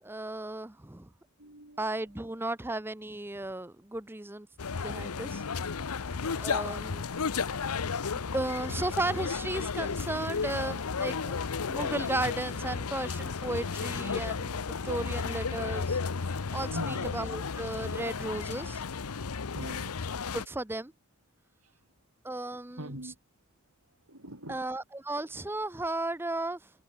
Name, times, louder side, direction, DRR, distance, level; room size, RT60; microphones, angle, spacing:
voice 1, 0.0-1.1 1.8-4.5 4.8-5.4 6.4-7.0 7.5-7.6 8.1-18.8 20.3-20.9 22.2-22.9 24.5-26.7, right 2 dB, 10° right, 0.6 m, -35 dB
voice 2, 1.4-1.9 16.7-17.2 19.5-19.9 21.6-21.7 22.8-23.2 24.1-24.6, right 1 dB, 75° right, 6.4 m, -41 dB
sound 1, 4.6-20.5, left 5 dB, 85° left, 0.8 m, -33 dB
head